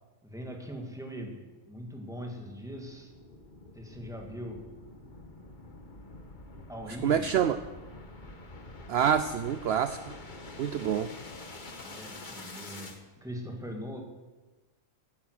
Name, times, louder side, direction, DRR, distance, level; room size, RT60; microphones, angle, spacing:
voice 1, 0.2-3.1 3.7-4.8 6.7-7.3 11.8-14.0, equal, 5° right, 2 dB, 1.9 m, -41 dB
sound 1, 1.5-13.0, left 2 dB, 40° left, 1.4 m, -47 dB
voice 2, 7.0-7.6 8.9-10.0 10.6-11.1, right 8 dB, 60° right, 11 dB, 0.8 m, -26 dB
15.5 x 9.7 x 6.5 m, 1.2 s
omnidirectional pair, 1.3 m